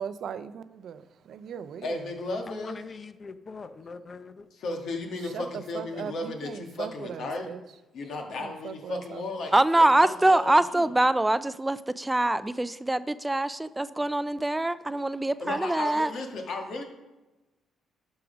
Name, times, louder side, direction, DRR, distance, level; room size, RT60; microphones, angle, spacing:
voice 1, 0.0-2.1 5.2-7.6 8.4-9.3, right 8 dB, 65° right, 13 dB, 0.5 m, -39 dB
voice 2, 1.8-2.8 4.5-7.5 7.9-10.9 15.4-16.8, left 2 dB, 70° left, 3 dB, 1.7 m, -35 dB
voice 3, 2.5-4.5, left 4 dB, 40° left, 12 dB, 0.7 m, -42 dB
voice 4, 9.5-16.1, right 1 dB, 10° right, 14 dB, 0.3 m, -24 dB
12.0 x 4.9 x 5.1 m, 1.1 s
cardioid pair, 90°, 0 cm